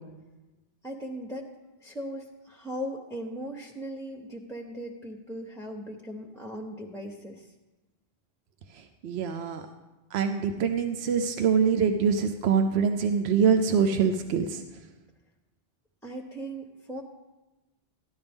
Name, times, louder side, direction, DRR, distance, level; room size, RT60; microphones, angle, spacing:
voice 1, 0.8-1.5 1.8-7.5 16.0-17.0, equal, 5° left, 1 dB, 0.7 m, -38 dB
voice 2, 8.7-9.6 10.1-14.6, right 6 dB, 80° right, 7 dB, 0.9 m, -24 dB
13.5 x 11.0 x 3.5 m, 1.1 s
omnidirectional pair, 1.1 m